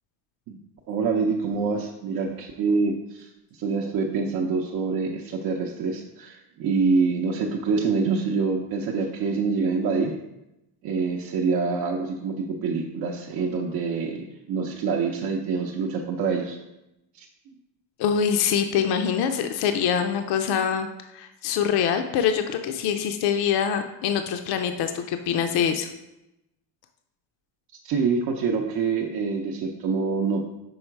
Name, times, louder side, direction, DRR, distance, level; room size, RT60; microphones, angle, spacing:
voice 1, 0.9-10.1 10.8-16.6 17.2-17.3 27.8-30.5, right 4 dB, 60° right, -1 dB, 0.6 m, -26 dB
voice 2, 18.0-20.9 21.1-25.9, left 8 dB, 65° left, 7 dB, 0.5 m, -24 dB
5.5 x 3.8 x 4.5 m, 0.91 s
cardioid pair, 140°, 41 cm